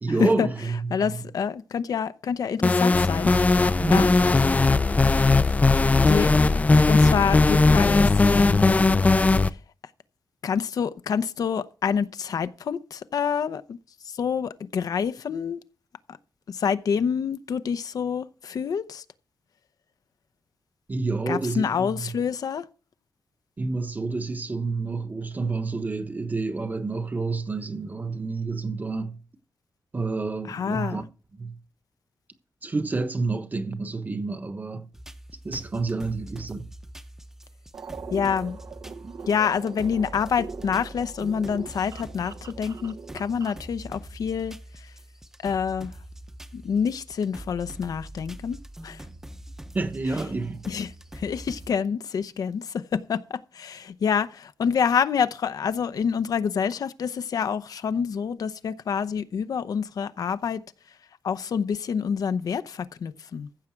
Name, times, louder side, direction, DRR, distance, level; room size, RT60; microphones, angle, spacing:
voice 1, 0.0-1.2 3.8-4.2 20.9-22.1 23.6-29.2 29.9-31.0 31.3-31.6 32.6-34.9 35.4-36.7 49.7-50.6, right 3 dB, 25° right, 1.1 m, -29 dB
voice 2, 0.9-3.3 3.9-4.1 6.1-6.3 6.9-8.6 9.4-9.5 10.4-13.8 14.2-15.6 16.5-19.0 21.3-22.6 30.5-31.0 38.1-38.6 39.3-44.5 45.4-45.9 46.5-48.6 48.8-49.0 50.7-50.9 51.2-60.6 61.2-63.5, left 7 dB, 70° left, 0.8 m, -27 dB
sound 1, 2.6-9.5, left 3 dB, 25° left, 0.5 m, -18 dB
sound 2, 34.9-51.7, right 1 dB, 5° right, 0.8 m, -43 dB
sound 3, 37.7-43.7, right 5 dB, 55° right, 0.9 m, -41 dB
15.0 x 7.3 x 4.6 m
wide cardioid pair, 125°, 6 cm